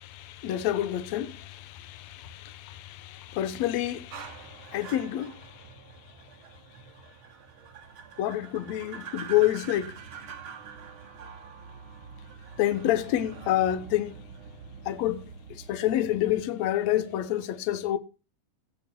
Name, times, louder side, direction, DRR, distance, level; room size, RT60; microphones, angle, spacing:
voice 1, 0.0-5.7 8.2-10.0 12.6-14.2 14.9-18.0, left 13 dB, 65° left, 1.8 m, -28 dB
sound 1, 4.1-16.5, right 6 dB, 55° right, 1.5 m, -45 dB
15.5 x 6.1 x 4.4 m
omnidirectional pair, 4.1 m